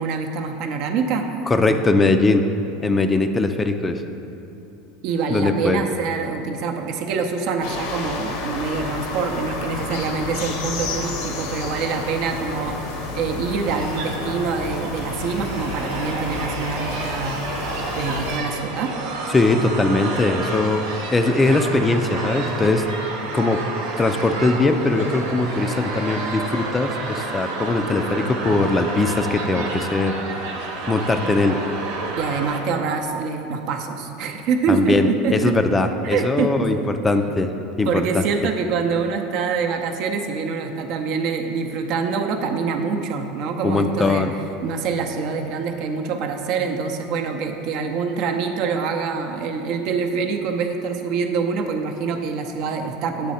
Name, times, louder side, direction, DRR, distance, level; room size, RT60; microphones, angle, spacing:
voice 1, 0.0-1.3 5.0-17.4 17.9-18.9 32.2-35.6 36.1-36.7 37.8-44.3 44.6-53.3, right 5 dB, 60° right, 5 dB, 0.5 m, -25 dB
voice 2, 1.5-2.5 2.8-4.0 5.3-5.8 19.3-20.8 21.1-22.8 23.3-23.6 24.0-30.2 30.9-31.6 34.7-37.5 37.8-38.2 43.6-44.3, left 2 dB, 20° left, 7 dB, 0.3 m, -20 dB
sound 1, 7.6-18.4, left 3 dB, 75° left, 0.8 m, -31 dB
sound 2, 13.6-32.6, right 3 dB, 85° right, 0.9 m, -30 dB
8.4 x 3.1 x 4.2 m, 2.8 s
supercardioid pair, 110°, 0 cm